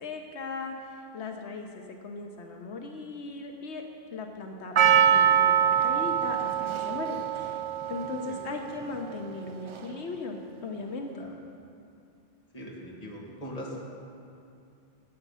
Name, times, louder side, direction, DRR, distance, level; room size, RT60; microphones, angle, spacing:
voice 1, 0.0-3.8 4.1-7.2 7.9-11.2, left 3 dB, 85° left, 3 dB, 1.2 m, -38 dB
Percussion, 4.8-9.1 9.8-9.9, right 8 dB, 55° right, 0.3 m, -24 dB
voice 2, 8.3-8.7 11.2-11.3 12.5-13.8, equal, 35° left, -4 dB, 2.3 m, -41 dB
16.5 x 8.2 x 5.6 m, 2.5 s
omnidirectional pair, 1.1 m